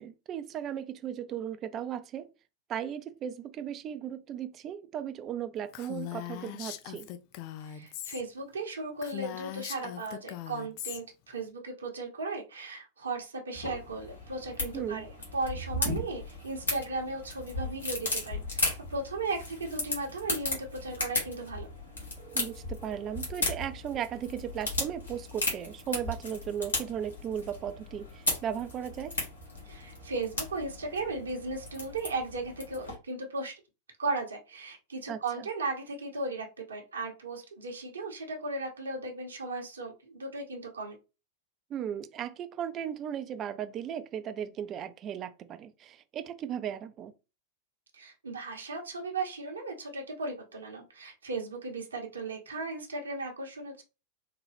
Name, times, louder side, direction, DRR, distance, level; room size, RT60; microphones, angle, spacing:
voice 1, 0.0-2.3 2.7-7.1 14.7-15.0 22.2-29.1 35.1-35.5 41.7-47.1, right 9 dB, 30° right, 0.4 m, -36 dB
Female speech woman speaking, 5.7-8.2 8.5-8.6 9.0-11.0, left 12 dB, 45° left, 0.4 m, -40 dB
voice 2, 7.7-21.7 29.7-33.5 34.0-41.0 47.9-53.8, right 3 dB, 70° right, 0.9 m, -36 dB
sound 1, 13.5-32.9, left 2 dB, 70° left, 1.5 m, -36 dB
3.8 x 2.2 x 3.3 m
figure-of-eight pair, 90°, 0 cm